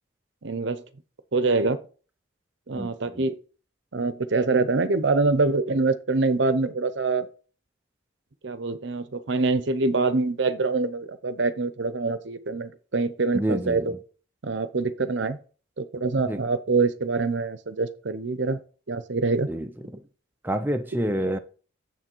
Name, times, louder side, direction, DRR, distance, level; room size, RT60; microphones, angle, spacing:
voice 1, 0.4-0.8 1.3-1.8 2.7-3.4 3.9-7.3 8.4-13.9 14.4-15.4 15.8-18.6 18.9-19.5, right 3 dB, 60° right, 0.7 m, -25 dB
voice 2, 13.3-14.0 15.0-15.1 16.2-16.4 19.5-20.0 20.4-21.4, right 1 dB, 10° right, 0.5 m, -28 dB
7.4 x 6.4 x 4.5 m
head